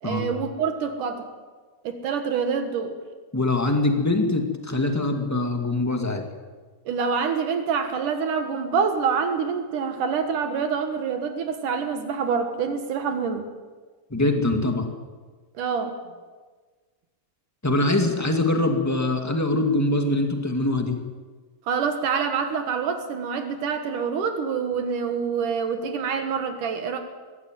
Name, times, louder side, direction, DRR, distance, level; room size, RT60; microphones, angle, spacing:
voice 1, 0.0-1.3 1.8-3.0 6.9-13.5 15.6-16.0 21.7-27.0, right 6 dB, 70° right, 6 dB, 3.0 m, -26 dB
voice 2, 3.3-6.2 14.1-14.9 17.6-21.0, left 2 dB, 5° left, 4 dB, 1.5 m, -23 dB
21.5 x 16.0 x 9.2 m, 1.4 s
omnidirectional pair, 3.8 m